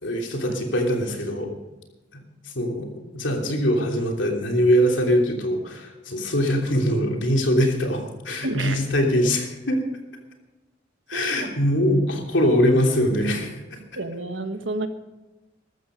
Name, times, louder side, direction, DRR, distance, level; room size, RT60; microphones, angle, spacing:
voice 1, 0.0-1.5 2.4-2.9 3.1-9.8 11.1-13.8, equal, 85° left, 2 dB, 3.1 m, -22 dB
voice 2, 8.4-8.8 11.1-11.5 14.0-14.9, right 2 dB, 90° right, 8 dB, 1.5 m, -30 dB
14.0 x 13.5 x 5.2 m, 1.1 s
head